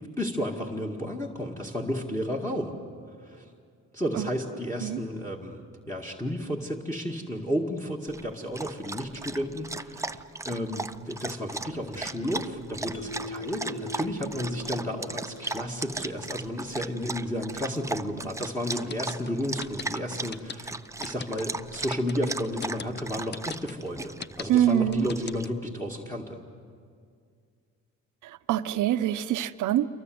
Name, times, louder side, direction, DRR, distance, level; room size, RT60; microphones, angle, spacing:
voice 1, 0.2-2.8 3.2-3.4 3.9-26.4, equal, 10° left, -2 dB, 2.0 m, -32 dB
Dog, 8.1-25.4, right 2 dB, 10° right, 0.6 m, -37 dB
Mallet percussion, 12.9-16.2, left 2 dB, 65° left, 1.2 m, -42 dB
sound 1, 18.7-25.6, left 6 dB, 35° left, 0.7 m, -39 dB
voice 2, 24.5-25.1 28.2-29.9, right 11 dB, 80° right, 11 dB, 0.9 m, -25 dB
28.0 x 23.5 x 7.9 m, 2.3 s
cardioid pair, 90°, 30 cm